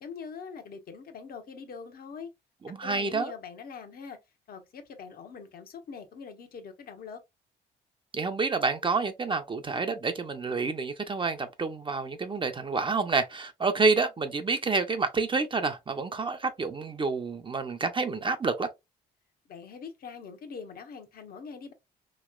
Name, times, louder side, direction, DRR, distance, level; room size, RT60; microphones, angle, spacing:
voice 1, 0.0-2.3 2.8-4.2 4.5-7.2 19.5-21.7, left 5 dB, 60° left, 1.0 m, -43 dB
voice 2, 2.6-3.3 8.1-18.7, right 4 dB, 30° right, 0.6 m, -28 dB
3.1 x 2.9 x 2.3 m
supercardioid pair, 70°, 17 cm